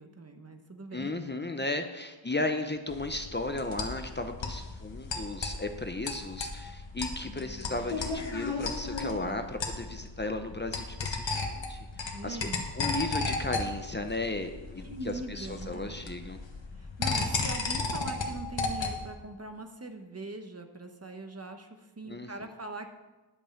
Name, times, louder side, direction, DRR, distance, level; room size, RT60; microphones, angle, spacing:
voice 1, 0.0-1.1 7.2-8.0 9.2-9.5 9.8-10.0 12.0-12.7 13.1-13.3 14.8-16.2 16.8-22.9, right 2 dB, 35° right, 6 dB, 1.0 m, -42 dB
voice 2, 0.9-12.5 12.8-16.4 22.0-22.3, left 2 dB, 25° left, 6 dB, 0.7 m, -35 dB
sound 1, 2.9-19.1, left 3 dB, 85° left, 1.4 m, -35 dB
11.0 x 5.4 x 7.0 m, 1.1 s
wide cardioid pair, 80°, 44 cm